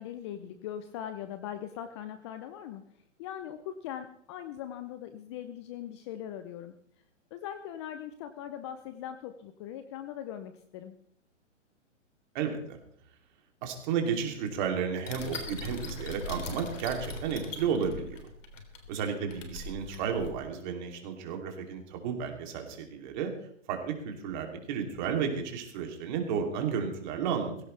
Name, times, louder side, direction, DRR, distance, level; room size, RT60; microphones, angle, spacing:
voice 1, 0.0-2.8 3.2-6.7 7.3-10.9, left 10 dB, 25° left, 10 dB, 0.6 m, -40 dB
voice 2, 12.3-12.8 13.6-18.2 18.9-23.3 23.7-27.5, right 7 dB, 35° right, 3 dB, 2.9 m, -32 dB
sound 1, 15.0-20.3, left 3 dB, 75° left, 3.6 m, -41 dB
19.0 x 16.0 x 3.3 m, 0.66 s
hypercardioid pair, 140°, 38 cm